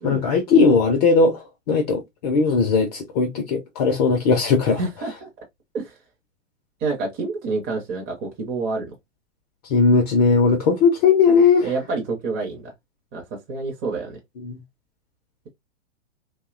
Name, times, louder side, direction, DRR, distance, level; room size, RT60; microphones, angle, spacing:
voice 1, 0.0-4.8 9.7-11.7 14.4-14.6, left 4 dB, 30° left, 0.4 m, -18 dB
voice 2, 4.7-5.3 5.7-5.9 6.8-8.9 11.6-12.7 13.1-14.2, right 3 dB, 25° right, 0.6 m, -28 dB
2.7 x 2.1 x 2.4 m
hypercardioid pair, 125°, 39 cm